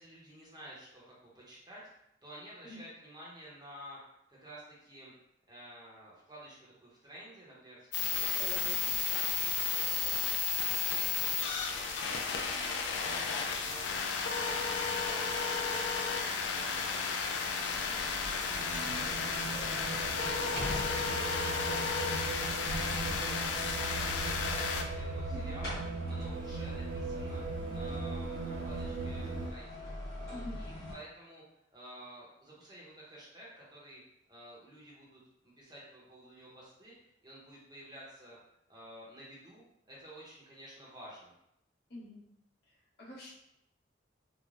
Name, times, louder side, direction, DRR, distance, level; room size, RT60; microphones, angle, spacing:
voice 1, 0.0-1.8 2.2-4.0 4.3-5.1 5.5-8.4 9.1-11.6 11.9-12.5 12.9-14.1 14.4-16.2 16.5-18.5 18.8-21.9 22.2-23.6 23.9-25.8 26.1-27.4 27.7-29.9 30.2-31.4 31.7-34.0 34.3-37.0 37.2-38.4 38.7-41.3, right 1 dB, 20° right, -6 dB, 0.7 m, -51 dB
sound 1, 7.9-24.8, left 5 dB, 70° left, 0.3 m, -33 dB
voice 2, 8.2-9.0 25.3-25.6 30.3-30.7 41.9-42.2 43.0-43.3, left 1 dB, 55° left, -6 dB, 0.8 m, -46 dB
sound 2, 17.7-30.9, equal, 20° left, 1.0 m, -44 dB
sound 3, 18.6-29.5, right 3 dB, 70° right, 0.3 m, -39 dB
3.2 x 2.0 x 2.4 m, 0.79 s
head